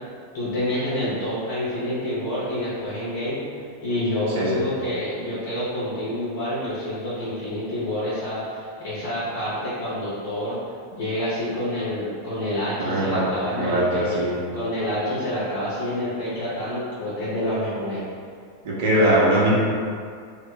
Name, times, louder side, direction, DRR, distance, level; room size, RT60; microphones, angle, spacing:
voice 1, 0.3-3.4 3.8-10.6 10.9-14.2 14.5-18.0, left 1 dB, 55° left, -9 dB, 0.6 m, -27 dB
voice 2, 12.8-14.4 18.6-19.5, right 1 dB, 55° right, -6 dB, 0.7 m, -21 dB
2.2 x 2.1 x 3.7 m, 2.2 s
figure-of-eight pair, 90°, 0 cm